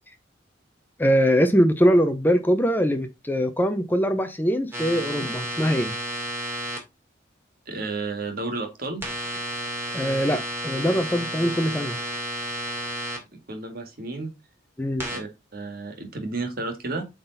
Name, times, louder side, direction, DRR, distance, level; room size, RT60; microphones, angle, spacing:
voice 1, 1.0-5.9 9.9-12.0 14.8-15.1, equal, 10° left, 0.7 m, -22 dB
sound 1, 4.7-6.8 9.0-13.2 15.0-15.2, right 1 dB, 15° right, 2.4 m, -32 dB
voice 2, 7.7-9.0 13.5-14.3 15.1-17.0, right 3 dB, 50° right, 2.0 m, -32 dB
8.3 x 3.9 x 4.0 m
head